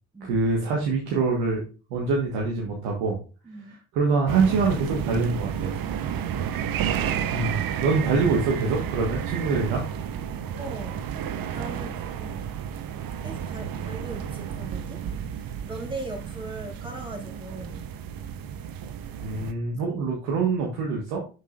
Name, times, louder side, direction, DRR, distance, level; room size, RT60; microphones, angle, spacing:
voice 1, 0.2-1.6 1.9-3.2 3.9-5.7 7.3-9.8 19.2-21.2, right 4 dB, 80° right, -1 dB, 1.5 m, -25 dB
voice 2, 3.4-3.8 6.1-6.3 10.6-11.1 11.5-12.6 13.2-15.0 15.3-17.8 19.9-20.0, right 2 dB, 10° right, 0 dB, 3.6 m, -40 dB
sound 1, 4.3-19.5, right 8 dB, 60° right, 0.9 m, -31 dB
8.1 x 6.2 x 2.5 m, 0.33 s
hypercardioid pair, 45°, 39 cm